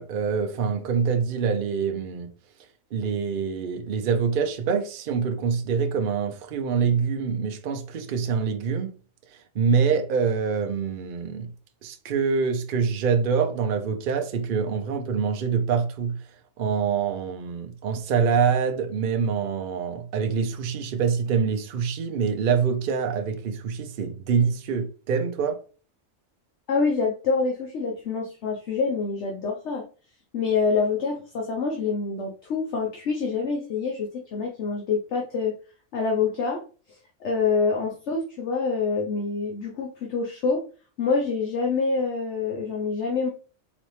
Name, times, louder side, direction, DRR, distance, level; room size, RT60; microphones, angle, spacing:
voice 1, 0.0-2.3 2.9-8.9 9.5-11.5 11.8-16.2 16.6-25.6, right 6 dB, 55° right, 0.6 m, -25 dB
voice 2, 26.7-29.8 30.3-35.5 35.9-36.6 37.2-40.7 41.0-43.3, left 4 dB, 60° left, 1.0 m, -26 dB
4.1 x 3.1 x 3.3 m
omnidirectional pair, 1.4 m